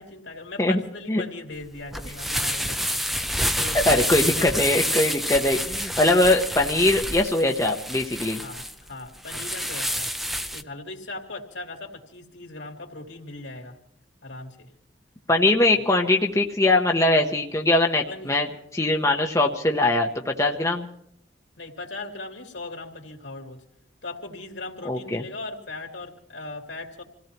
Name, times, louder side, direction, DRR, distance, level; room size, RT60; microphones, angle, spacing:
voice 1, 0.0-4.9 6.3-6.6 8.4-10.1 10.5-13.8 14.2-14.7 15.7-15.8 18.1-18.3 21.6-23.6 24.0-27.0, left 2 dB, 70° left, 1 dB, 2.9 m, -39 dB
sound 1, 1.6-10.6, equal, ahead, 0.6 m, -28 dB
voice 2, 3.9-8.4 15.3-18.5 18.7-20.9 24.8-25.2, left 2 dB, 15° left, 1 dB, 0.9 m, -21 dB
28.0 x 17.0 x 3.0 m, 0.74 s
head